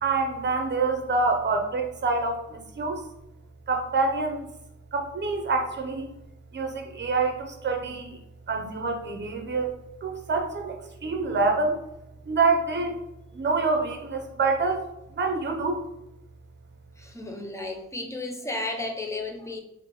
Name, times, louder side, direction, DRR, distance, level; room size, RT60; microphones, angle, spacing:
voice 1, 0.0-3.1 3.7-4.5 4.9-6.1 6.5-8.2 8.5-9.7 10.0-11.8 12.3-13.0 13.3-14.8 15.1-15.8, right 3 dB, 35° right, 4 dB, 0.7 m, -26 dB
voice 2, 17.0-19.6, left 2 dB, 10° left, 2 dB, 0.6 m, -33 dB
3.1 x 2.7 x 4.1 m, 0.86 s
cardioid pair, 100°, 30 cm